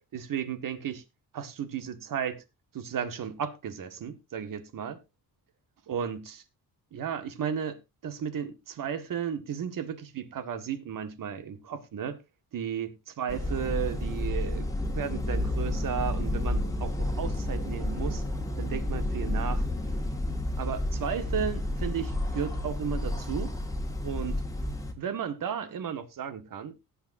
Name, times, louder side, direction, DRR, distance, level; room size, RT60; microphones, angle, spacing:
voice 1, 0.1-1.0 1.3-2.4 2.7-5.0 5.9-6.4 6.9-12.2 12.5-18.2 18.6-19.6 20.6-23.5 24.0-24.4 25.0-26.8, right 8 dB, 60° right, 1.8 m, -34 dB
sound 1, 13.3-24.9, left 1 dB, 10° left, 2.0 m, -31 dB
17.5 x 8.6 x 2.7 m
cardioid pair, 130°, 37 cm